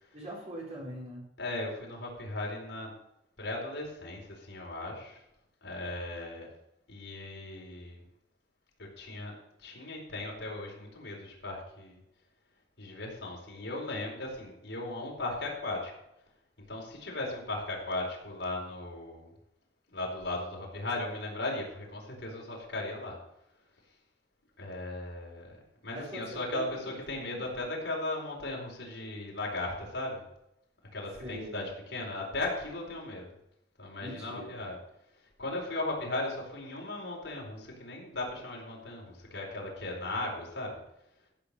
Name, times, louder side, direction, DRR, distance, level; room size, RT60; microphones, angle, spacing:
voice 1, 0.1-1.3 25.9-27.4 31.2-31.7 34.0-34.7, right 1 dB, 35° right, -4 dB, 4.3 m, -43 dB
voice 2, 1.4-2.9 3.4-5.2 5.6-6.5 6.9-8.0 8.8-9.3 9.6-12.0 12.8-15.9 16.7-19.3 19.9-23.2 24.6-25.6 25.8-30.2 30.9-33.3 33.8-34.8 35.4-40.8, left 2 dB, 75° left, -1 dB, 4.5 m, -37 dB
14.5 x 7.0 x 6.7 m, 0.83 s
head